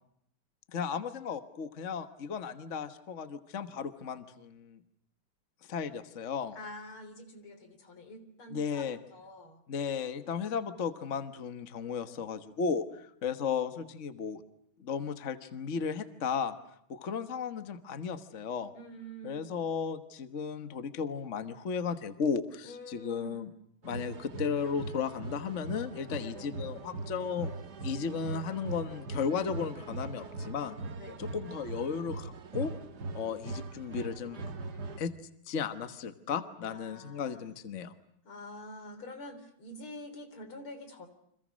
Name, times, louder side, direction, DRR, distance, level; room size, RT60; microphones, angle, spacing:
voice 1, 0.7-4.8 5.7-6.6 8.5-9.0 9.7-14.4 14.8-16.6 16.9-18.7 19.2-23.5 23.8-27.5 27.8-30.8 31.2-32.7 33.1-34.4 35.0-35.1 35.5-37.9, left 6 dB, 40° left, 10 dB, 1.5 m, -35 dB
voice 2, 6.6-9.6 18.7-19.5 22.6-23.5 26.1-26.5 31.0-31.4 36.7-37.5 38.2-41.1, left 1 dB, 80° left, 8 dB, 4.3 m, -47 dB
sound 1, 23.8-35.0, right 3 dB, 50° right, 2.1 m, -40 dB
30.0 x 26.0 x 6.4 m, 0.72 s
omnidirectional pair, 2.3 m